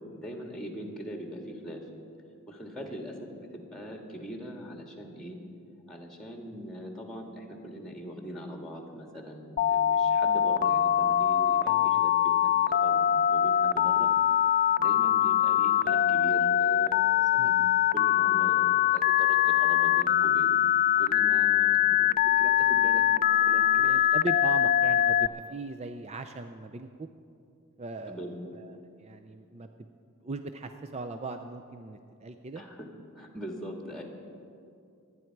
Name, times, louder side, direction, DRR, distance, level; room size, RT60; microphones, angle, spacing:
voice 1, 0.1-1.8 2.5-5.4 5.9-14.1 14.8-20.6 21.0-23.9 28.1-28.5 32.6-32.9 33.2-34.0, equal, 5° left, 2 dB, 1.7 m, -41 dB
Telephone, 9.6-25.3, left 11 dB, 40° left, 0.3 m, -23 dB
voice 2, 11.6-12.0 17.4-17.7 23.8-27.1 27.8-29.7 30.2-32.6, right 3 dB, 30° right, 7 dB, 0.5 m, -39 dB
26.5 x 9.9 x 4.6 m, 2.5 s
head